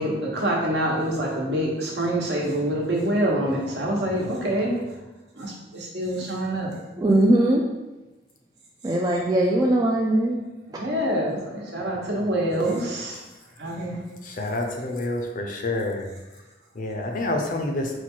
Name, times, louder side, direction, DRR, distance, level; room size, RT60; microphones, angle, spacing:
voice 1, 0.0-4.7 5.4-6.7 10.7-13.2 13.6-14.0, right 1 dB, 70° right, -2 dB, 1.0 m, -26 dB
voice 2, 7.0-7.6 8.8-10.4 10.7-10.8, right 1 dB, 20° right, -2 dB, 0.3 m, -20 dB
voice 3, 14.2-16.1 16.8-17.9, left 2 dB, 50° left, 3 dB, 0.5 m, -28 dB
4.3 x 2.3 x 4.4 m, 1.1 s
head